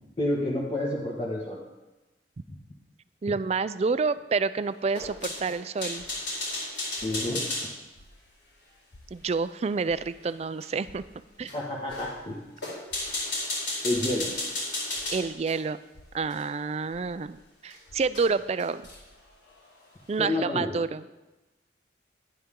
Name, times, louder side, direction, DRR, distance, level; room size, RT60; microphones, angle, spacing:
voice 1, 0.2-1.6 2.5-2.6 7.0-7.5 11.5-12.4 13.8-14.4 20.2-20.8, left 1 dB, 30° left, -6 dB, 1.5 m, -29 dB
voice 2, 3.2-6.0 9.1-11.0 11.4-11.5 15.1-15.8 16.1-18.8 20.1-21.0, right 4 dB, 35° right, 14 dB, 0.3 m, -28 dB
sound 1, 4.9-7.7 10.6-10.7 11.4-11.6 11.9-12.1 12.6-15.6 16.3-16.4 17.7-17.8 18.1-18.3 18.6-19.1, left 2 dB, 90° left, 4.5 m, -33 dB
sound 2, 5.0-7.6 7.9-15.5 15.9-19.4, left 1 dB, 60° left, 1.2 m, -57 dB
12.5 x 9.8 x 3.7 m, 1.1 s
head